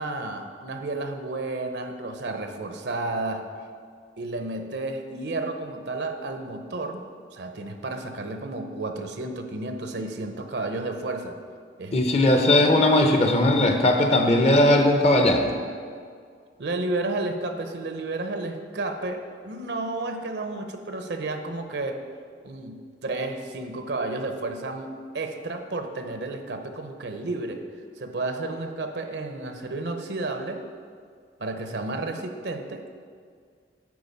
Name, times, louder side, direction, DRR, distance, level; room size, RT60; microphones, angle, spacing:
voice 1, 0.0-3.4 4.2-7.0 7.3-11.3 11.8-12.0 16.6-22.0 22.4-27.6 28.0-30.6 31.4-32.9, right 2 dB, 70° right, 6 dB, 0.7 m, -32 dB
voice 2, 11.9-15.5, left 1 dB, 35° left, 4 dB, 0.8 m, -19 dB
9.5 x 4.4 x 5.4 m, 2.1 s
head